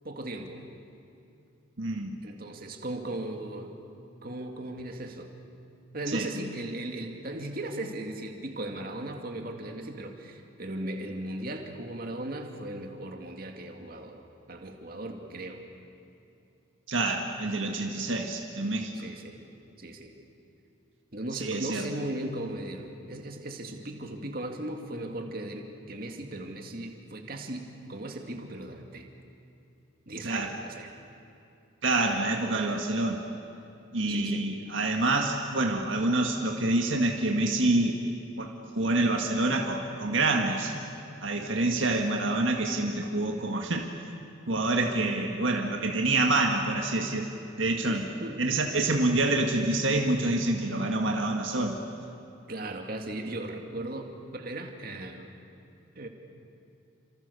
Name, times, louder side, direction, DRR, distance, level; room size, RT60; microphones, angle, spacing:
voice 1, 0.0-0.6 2.2-3.7 4.2-5.3 5.9-15.6 18.9-19.4 19.8-20.1 21.1-29.1 30.1-30.9 34.1-34.5 47.8-48.4 52.5-55.3 56.0-56.1, right 1 dB, 45° right, 3 dB, 2.4 m, -37 dB
voice 2, 1.8-2.2 6.1-6.3 16.9-18.9 21.4-21.9 30.2-30.5 31.8-33.2 33.9-38.0 38.4-38.5 38.8-40.8 41.2-43.9 44.5-47.3 47.6-48.1 48.4-51.8, right 2 dB, 70° right, 2 dB, 1.8 m, -27 dB
29.0 x 26.5 x 6.9 m, 2.8 s
head